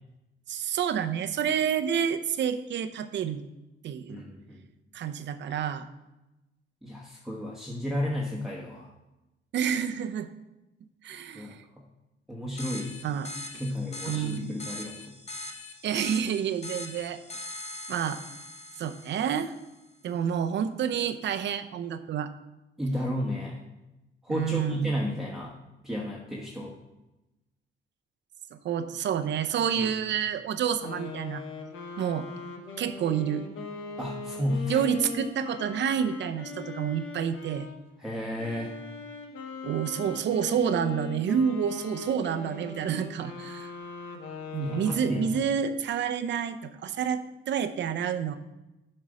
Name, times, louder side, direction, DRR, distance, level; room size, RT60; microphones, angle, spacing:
voice 1, 0.5-3.4 3.8-4.2 4.9-5.9 9.5-10.3 11.0-11.6 13.0-13.3 14.1-14.5 15.8-17.2 17.9-18.2 18.8-19.5 20.0-22.3 24.3-25.0 28.5-31.4 32.0-32.3 32.8-33.4 34.7-37.7 39.6-43.7 44.5-48.4, right 8 dB, 65° right, 10 dB, 0.6 m, -29 dB
voice 2, 4.1-4.6 6.8-8.9 11.1-11.8 12.3-13.0 13.6-15.2 22.8-23.6 24.2-25.6 25.8-26.8 29.7-29.9 34.0-34.8 38.0-38.7 44.6-45.3, left 1 dB, ahead, -3 dB, 1.1 m, -33 dB
sound 1, 12.6-19.7, left 2 dB, 35° left, 1.0 m, -42 dB
sound 2, 30.8-37.8 38.4-45.5, left 3 dB, 85° left, 1.2 m, -40 dB
7.6 x 5.4 x 4.8 m, 1.0 s
cardioid pair, 90°, 20 cm